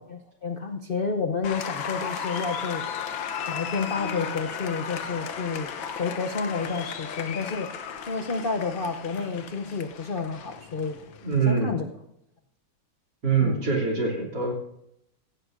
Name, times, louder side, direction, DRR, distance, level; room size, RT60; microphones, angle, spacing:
voice 1, 0.0-2.8 3.5-5.7 6.0-7.7 8.1-11.0 11.5-11.9 13.4-13.6, left 4 dB, 65° left, 5 dB, 0.5 m, -30 dB
Applause, 1.4-11.5, left 7 dB, 85° left, 1.8 m, -35 dB
voice 2, 11.2-11.8 13.2-14.5, right 5 dB, 60° right, -2 dB, 3.6 m, -24 dB
16.5 x 15.5 x 2.6 m, 0.79 s
omnidirectional pair, 2.1 m